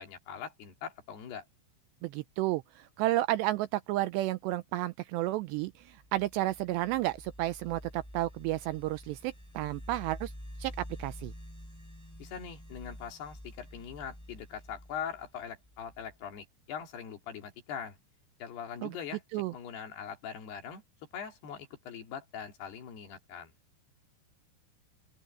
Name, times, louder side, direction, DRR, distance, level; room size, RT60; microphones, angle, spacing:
voice 1, 0.0-1.5 12.2-18.0 18.4-20.8 21.1-23.5, left 7 dB, 65° left, 4.4 m, -42 dB
voice 2, 2.0-10.3 10.6-11.3 18.8-18.9 19.3-19.5, right 16 dB, 80° right, 2.6 m, -32 dB
sound 1, 5.8-16.3, equal, 5° left, 5.6 m, -48 dB
open air
omnidirectional pair, 5.4 m